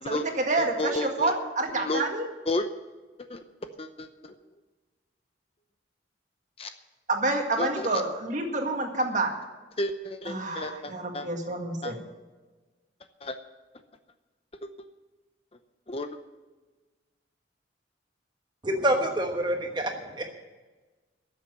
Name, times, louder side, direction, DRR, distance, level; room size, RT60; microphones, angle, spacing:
voice 1, 0.1-2.3 7.1-9.3 10.3-12.0, right 2 dB, 40° right, 3 dB, 1.9 m, -28 dB
voice 2, 0.6-1.3 1.7-2.0 2.5-2.7 3.3-3.4 3.8-4.3 6.6-6.7 7.5-8.0 9.8-11.3 11.8-11.9 13.2-13.4 14.6-14.7 15.9-16.1, left 2 dB, 30° left, 8 dB, 0.7 m, -32 dB
voice 3, 18.6-20.3, right 1 dB, 25° right, 4 dB, 1.1 m, -27 dB
13.0 x 7.5 x 9.6 m, 1.2 s
head